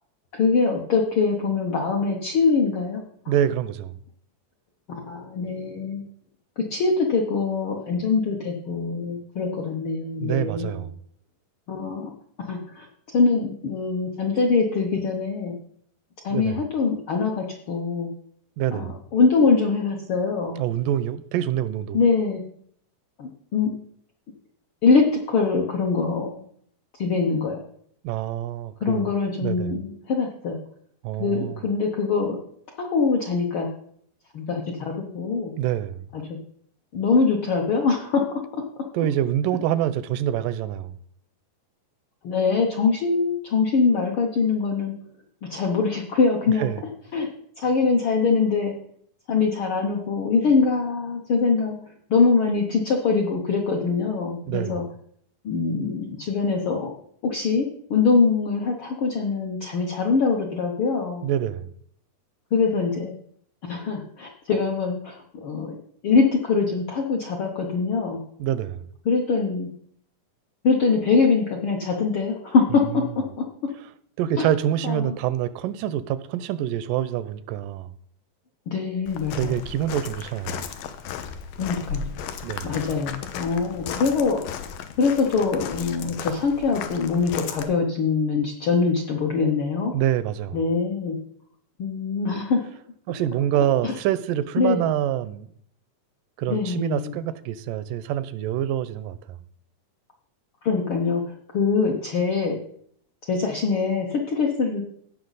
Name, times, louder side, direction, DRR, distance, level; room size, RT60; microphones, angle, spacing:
voice 1, 0.3-3.0 4.9-6.0 6.6-10.8 11.7-12.1 12.5-12.9 13.1-15.5 16.2-18.1 18.7-20.6 21.9-22.4 23.2-23.7 24.8-26.4 27.0-27.6 28.8-30.6 31.2-32.4 32.8-33.7 34.3-35.5 36.1-36.4 36.9-38.6 42.2-44.9 45.5-46.7 47.1-47.3 47.6-48.7 49.3-51.8 52.1-54.8 55.4-56.9 57.2-61.2 62.5-63.1 63.6-65.8 66.0-68.2 69.0-69.7 70.6-73.4 74.4-74.5 74.8-75.2 78.7-79.6 81.6-82.1 82.6-84.4 85.0-89.9 90.5-91.2 91.8-92.8 93.8-93.9 94.6-94.9 96.5-97.2 100.6-101.2 101.5-102.6 103.3-104.8, left 4 dB, 70° left, 1.2 m, -23 dB
voice 2, 3.3-3.9 10.2-11.0 16.3-16.6 18.6-19.0 20.6-22.0 28.0-29.1 29.4-29.7 31.0-31.7 35.6-36.1 38.9-41.0 46.6-46.8 54.5-54.8 61.2-61.7 68.4-68.9 74.2-77.9 79.4-80.7 82.4-82.7 89.9-90.6 93.1-95.5 96.4-99.2, right 11 dB, 85° right, 2.2 m, -26 dB
Walk footsteps, 79.1-87.6, left 7 dB, 90° left, 2.4 m, -35 dB
16.5 x 5.8 x 4.0 m
omnidirectional pair, 3.8 m